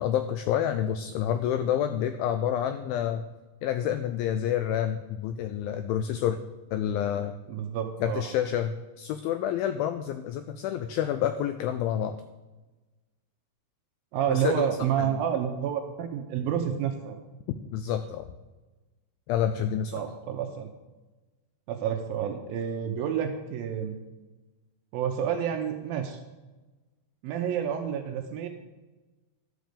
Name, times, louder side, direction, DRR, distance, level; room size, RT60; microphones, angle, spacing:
voice 1, 0.0-3.2 3.6-6.4 6.7-7.3 8.0-12.2 14.3-14.7 15.0-15.2 17.7-18.3 19.3-20.0, left 10 dB, 85° left, 9 dB, 2.1 m, -28 dB
voice 2, 7.5-8.2 14.1-17.2 19.9-20.7 21.7-24.0 24.9-26.2 27.2-28.5, right 9 dB, 75° right, 5 dB, 2.2 m, -29 dB
12.5 x 6.4 x 6.8 m, 1.2 s
omnidirectional pair, 4.8 m